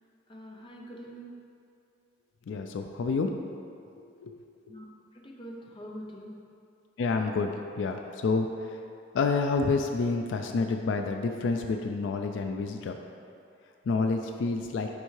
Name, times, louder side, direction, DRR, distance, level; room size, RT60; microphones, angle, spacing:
voice 1, 0.3-1.3 4.7-4.8 5.1-6.3, equal, 25° left, -1 dB, 0.6 m, -44 dB
voice 2, 2.5-3.3 4.2-4.3 7.0-8.5 9.1-13.0 13.9-14.9, left 4 dB, 75° left, 5 dB, 0.3 m, -28 dB
9.8 x 3.4 x 3.2 m, 2.5 s
head